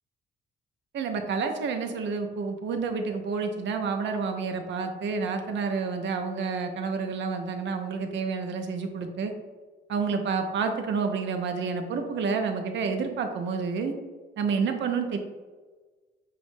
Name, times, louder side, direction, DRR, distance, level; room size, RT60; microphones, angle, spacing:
voice 1, 0.9-9.3 9.9-13.9 14.4-15.2, right 5 dB, 65° right, 5 dB, 0.6 m, -29 dB
6.9 x 2.5 x 2.6 m, 1.4 s
cardioid pair, 90°, 20 cm